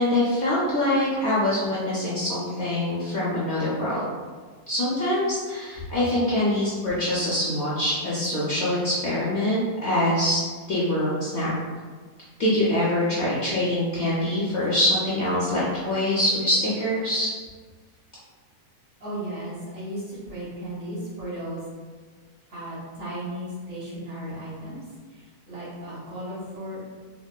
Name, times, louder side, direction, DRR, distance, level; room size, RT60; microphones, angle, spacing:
voice 1, 0.0-4.0 4.7-10.4 10.7-11.5 12.4-17.3, left 1 dB, 60° left, -8 dB, 0.7 m, -24 dB
voice 2, 19.0-21.6 22.5-24.8 25.1-26.8, right 1 dB, 50° right, -9 dB, 1.5 m, -35 dB
3.9 x 2.1 x 2.2 m, 1.5 s
omnidirectional pair, 1.7 m